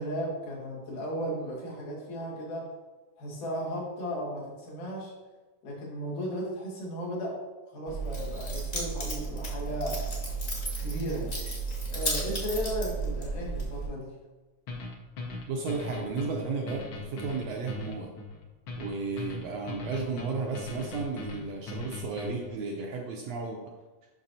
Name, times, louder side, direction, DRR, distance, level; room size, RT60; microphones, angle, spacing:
voice 1, 0.0-2.7 3.2-5.1 5.6-7.4 7.7-10.0 10.8-11.4 11.9-14.1, equal, 90° left, -5 dB, 3.3 m, -35 dB
Keys jangling, 7.9-13.9, right 3 dB, 35° left, 1.0 m, -33 dB
sound 1, 14.7-22.6, left 3 dB, 70° left, 1.2 m, -39 dB
voice 2, 15.5-18.1 18.8-23.6, right 4 dB, 75° right, 1 dB, 1.6 m, -33 dB
7.2 x 6.1 x 2.7 m, 1.2 s
omnidirectional pair, 3.5 m